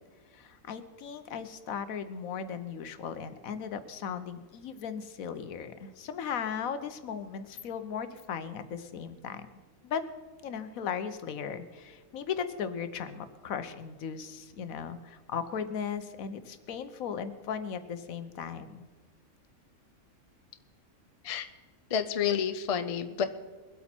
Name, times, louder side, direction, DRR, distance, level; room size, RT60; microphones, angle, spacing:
voice 1, 0.3-9.5 9.8-10.0 10.4-18.9, left 7 dB, 75° left, 11 dB, 1.2 m, -37 dB
voice 2, 21.9-23.2, left 8 dB, 50° left, 9 dB, 0.4 m, -29 dB
22.0 x 8.4 x 4.4 m, 1.4 s
omnidirectional pair, 1.5 m